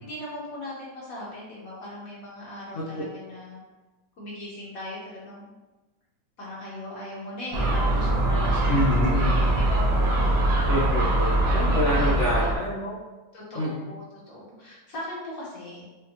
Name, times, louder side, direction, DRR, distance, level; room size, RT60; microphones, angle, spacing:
voice 1, 0.0-3.6 4.2-5.5 6.4-10.9 11.9-12.6 13.3-15.8, left 1 dB, 50° left, -6 dB, 1.4 m, -39 dB
voice 2, 2.7-3.1 8.7-9.5 10.7-13.0 13.6-13.9, left 1 dB, 70° left, -6 dB, 0.7 m, -27 dB
Gull seagull, 7.5-12.6, right 1 dB, 90° right, 1.6 m, -22 dB
5.4 x 2.3 x 2.9 m, 1.2 s
omnidirectional pair, 2.0 m